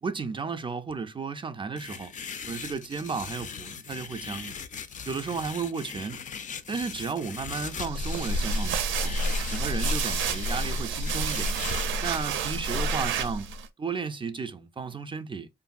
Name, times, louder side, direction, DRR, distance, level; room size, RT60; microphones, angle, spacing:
voice 1, 0.0-2.1 2.4-4.6 5.1-6.2 6.7-9.1 9.5-11.5 12.0-13.5 13.8-15.5, right 5 dB, 25° right, 0.4 m, -33 dB
sound 1, 1.8-11.8, left 6 dB, 40° left, 0.4 m, -39 dB
sound 2, 7.7-13.7, right 2 dB, 80° right, 0.5 m, -29 dB
2.7 x 2.6 x 2.4 m
cardioid pair, 90°, 20 cm